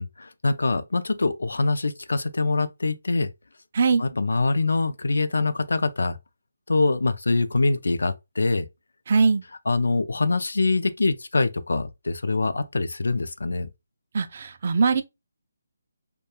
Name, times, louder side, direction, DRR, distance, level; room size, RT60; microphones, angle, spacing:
voice 1, 0.0-3.3 4.0-6.2 6.7-8.7 9.7-13.7, left 3 dB, 85° left, 0.3 m, -24 dB
voice 2, 9.1-9.4 14.1-15.0, right 4 dB, 45° right, 0.3 m, -21 dB
2.3 x 2.2 x 2.8 m
hypercardioid pair, 165°, 0 cm